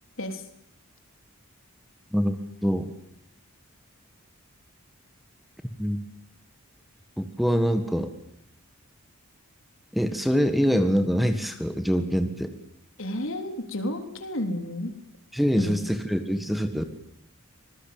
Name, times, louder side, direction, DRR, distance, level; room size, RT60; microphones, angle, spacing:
voice 1, 7.2-8.1 9.9-12.5 15.3-16.8, equal, ahead, 8 dB, 1.5 m, -24 dB
voice 2, 13.0-14.9 15.5-15.9, left 1 dB, 65° left, 6 dB, 3.6 m, -31 dB
26.5 x 20.5 x 8.9 m, 0.74 s
head